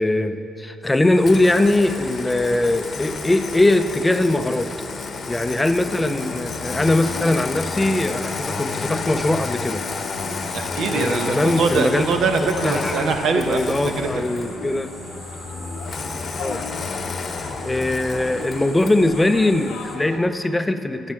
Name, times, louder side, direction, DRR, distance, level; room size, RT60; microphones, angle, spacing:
voice 1, 0.0-4.7 5.3-9.8 10.9-12.1 12.6-14.9 16.4-16.7 17.6-21.1, left 2 dB, 15° left, 9 dB, 0.5 m, -21 dB
sound 1, 0.8-20.0, equal, 10° right, 1.3 m, -43 dB
Engine starting, 1.2-14.6 15.8-19.0, left 4 dB, 45° left, 0.9 m, -31 dB
sound 2, 5.8-20.2, left 3 dB, 90° left, 0.9 m, -36 dB
voice 2, 10.3-13.6 14.0-14.2, right 4 dB, 75° right, 5 dB, 0.9 m, -23 dB
10.0 x 6.6 x 7.5 m, 2.9 s
cardioid pair, 90°, 0 cm